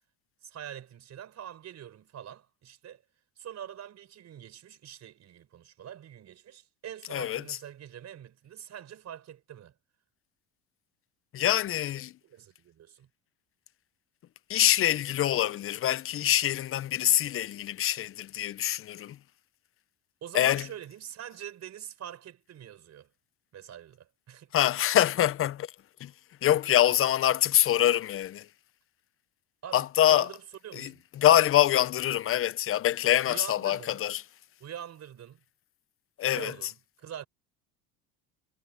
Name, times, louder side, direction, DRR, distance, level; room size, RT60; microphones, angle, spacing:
voice 1, 0.4-3.0 3.4-9.7 12.2-13.1 20.2-23.1 23.5-24.5 29.6-31.0 33.3-34.0 34.6-35.4 36.3-37.3, right 10 dB, 45° right, 4.3 m, -44 dB
voice 2, 7.1-7.6 11.3-12.1 14.5-19.2 20.3-20.7 24.5-25.7 26.0-26.1 26.4-28.5 29.7-30.3 30.7-30.9 31.2-34.2 36.2-36.7, left 12 dB, 35° left, 0.6 m, -25 dB
supercardioid pair, 105°, 38 cm